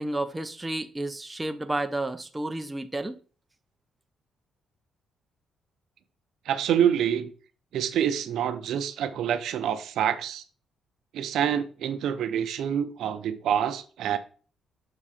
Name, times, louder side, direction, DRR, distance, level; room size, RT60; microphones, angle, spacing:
voice 1, 0.0-3.1, right 2 dB, 15° right, 0.6 m, -31 dB
voice 2, 6.5-7.3 7.7-10.4 11.1-14.2, right 9 dB, 75° right, 0.6 m, -26 dB
6.7 x 3.7 x 4.9 m
cardioid pair, 90°, 0 cm